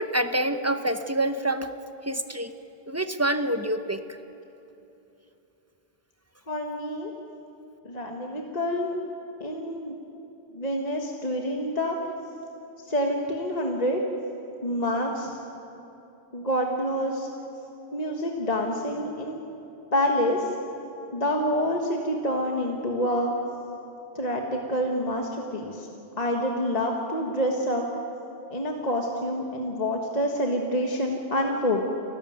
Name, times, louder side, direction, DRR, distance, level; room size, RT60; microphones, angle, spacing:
voice 1, 0.0-1.7 2.0-2.5 2.9-4.2, right 1 dB, 15° right, 8 dB, 0.8 m, -27 dB
voice 2, 6.5-7.1 7.8-9.0 9.4-9.9 10.5-12.0 12.9-14.0 14.6-15.4 16.3-17.3 17.9-19.4 19.9-20.5 21.1-23.3 24.1-25.9 26.2-27.9 28.5-31.8, equal, 40° left, 1 dB, 1.7 m, -27 dB
29.0 x 13.5 x 9.5 m, 3.0 s
omnidirectional pair, 1.1 m